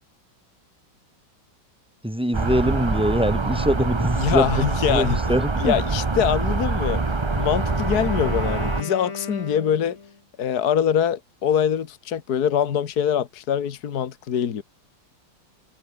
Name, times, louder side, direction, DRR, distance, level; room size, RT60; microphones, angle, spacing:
voice 1, 2.0-5.7, equal, 5° right, 3.0 m, -23 dB
sound 1, 2.3-8.8, right 3 dB, 25° right, 0.6 m, -25 dB
voice 2, 4.2-5.2 5.6-7.0 7.4-10.0 10.4-14.6, left 8 dB, 55° left, 1.9 m, -23 dB
Wind instrument woodwind instrument, 6.7-10.2, left 4 dB, 40° left, 2.5 m, -36 dB
omnidirectional pair, 2.1 m